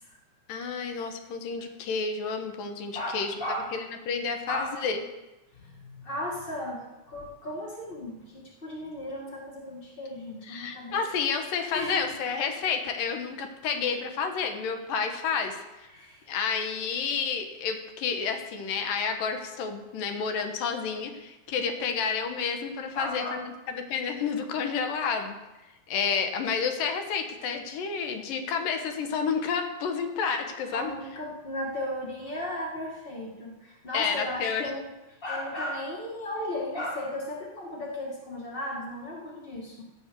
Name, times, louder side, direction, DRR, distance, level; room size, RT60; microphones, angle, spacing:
voice 1, 0.5-3.3 3.7-5.0 10.5-15.9 16.3-25.4 25.9-30.9 33.9-34.7, left 6 dB, 70° left, 5 dB, 2.7 m, -30 dB
voice 2, 2.9-3.8 4.5-4.8 5.5-11.0 11.7-12.1 15.9-16.3 22.9-23.4 30.7-34.9 35.2-39.8, left 1 dB, 50° left, -2 dB, 0.6 m, -35 dB
16.0 x 7.4 x 6.9 m, 1.0 s
omnidirectional pair, 4.5 m